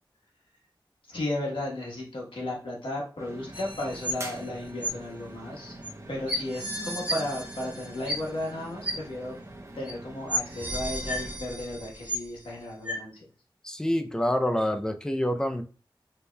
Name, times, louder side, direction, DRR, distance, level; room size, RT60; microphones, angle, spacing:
voice 1, 1.1-5.7 6.1-9.4 9.7-13.2, left 1 dB, 90° left, -3 dB, 1.2 m, -34 dB
sound 1, 3.2-11.4, right 1 dB, 35° right, 0.7 m, -44 dB
sound 2, 3.5-4.5 4.8-4.9 5.8-5.9 6.3-8.5 8.8-8.9 9.8-9.9 10.3-12.5 12.8-12.9, right 1 dB, 15° right, 1.9 m, -33 dB
voice 2, 13.6-15.6, left 1 dB, 10° left, 6 dB, 0.5 m, -27 dB
4.3 x 3.4 x 2.2 m, 0.37 s
wide cardioid pair, 65°, 9 cm